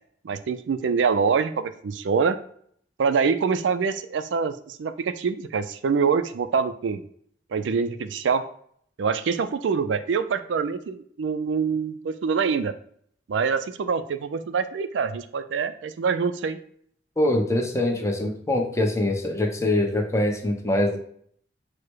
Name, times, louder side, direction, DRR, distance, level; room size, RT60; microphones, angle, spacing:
voice 1, 0.2-2.4 3.0-7.0 7.5-8.4 9.0-12.7 13.3-16.6, right 5 dB, 90° right, 11 dB, 0.4 m, -25 dB
voice 2, 17.2-21.0, left 1 dB, 15° left, 2 dB, 0.7 m, -23 dB
4.7 x 2.1 x 4.6 m, 0.62 s
head